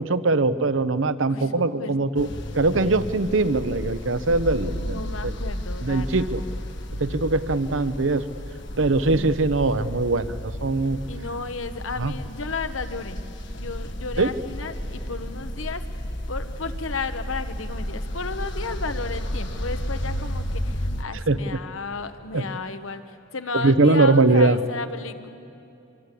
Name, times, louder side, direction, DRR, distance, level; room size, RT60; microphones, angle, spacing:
voice 1, 0.0-2.3 2.5-5.3 5.8-6.4 7.0-8.2 8.8-11.0 12.0-12.1 14.2-14.3 21.3-21.4 22.3-22.4 23.6-24.6, right 3 dB, 70° right, 13 dB, 0.9 m, -21 dB
voice 2, 1.2-2.0 4.7-6.6 9.1-9.4 11.1-13.2 13.6-25.3, left 4 dB, 80° left, 9 dB, 1.3 m, -33 dB
sound 1, 2.1-21.0, equal, 65° left, 1.7 m, -32 dB
25.5 x 23.5 x 8.5 m, 2.6 s
head